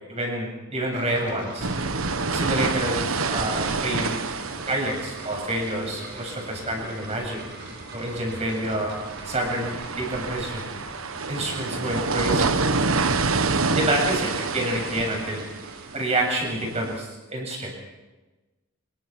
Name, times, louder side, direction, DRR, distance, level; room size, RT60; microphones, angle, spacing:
voice 1, 0.0-1.7 2.3-4.2 4.7-7.4 7.9-9.0 9.2-10.7 11.3-12.5 13.7-15.4 15.9-17.7, right 1 dB, 30° right, 0 dB, 7.5 m, -28 dB
sound 1, 0.9-16.6, right 1 dB, 55° right, 5.6 m, -42 dB
sound 2, 1.6-17.0, right 4 dB, 70° right, 1.3 m, -28 dB
25.5 x 23.0 x 6.1 m, 1.2 s
head